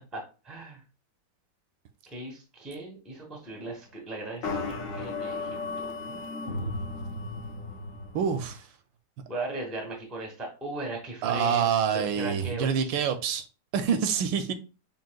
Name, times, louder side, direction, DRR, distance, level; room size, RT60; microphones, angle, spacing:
voice 1, 0.1-0.8 2.1-6.8 9.3-11.7 12.1-12.9, right 2 dB, ahead, 0.5 m, -38 dB
sound 1, 4.4-8.5, left 3 dB, 60° left, 0.9 m, -35 dB
voice 2, 8.1-8.6 11.2-13.4 13.7-14.5, right 7 dB, 80° right, 1.3 m, -26 dB
5.6 x 2.8 x 2.3 m
omnidirectional pair, 2.0 m